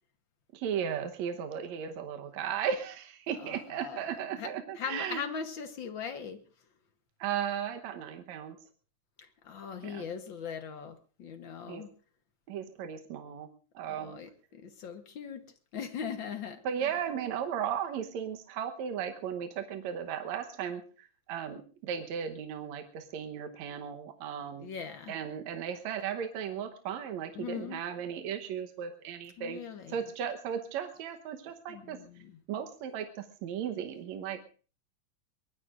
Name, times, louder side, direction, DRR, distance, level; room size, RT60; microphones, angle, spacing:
voice 1, 0.5-5.2 7.2-8.6 9.8-10.0 11.7-11.8 12.5-13.5 13.7-14.2 16.6-24.7 25.1-29.6 29.9-32.0 32.5-34.4, right 8 dB, 75° right, 5 dB, 2.3 m, -36 dB
voice 2, 3.4-4.5 4.8-6.4 9.2-11.9 13.8-15.4 15.7-16.6 24.6-25.1 27.3-27.8 29.4-30.0 31.7-32.4, left 7 dB, 55° left, 7 dB, 1.5 m, -40 dB
23.0 x 20.5 x 2.5 m, 0.38 s
omnidirectional pair, 3.3 m